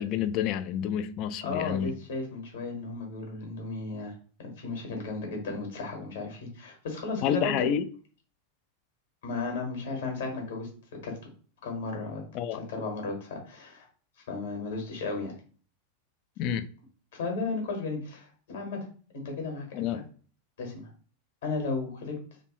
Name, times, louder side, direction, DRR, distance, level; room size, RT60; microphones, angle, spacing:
voice 1, 0.0-1.9 7.2-7.8 12.3-12.6 16.4-16.7 19.7-20.1, left 9 dB, 40° left, 0.3 m, -29 dB
voice 2, 1.4-7.7 9.2-10.7 11.0-11.2 11.6-12.2 12.6-13.9 14.3-15.4 17.1-18.9 19.1-19.7 20.6-20.9 21.4-22.2, left 3 dB, 60° left, 1.3 m, -34 dB
3.1 x 2.5 x 3.0 m
figure-of-eight pair, 90°, 0 cm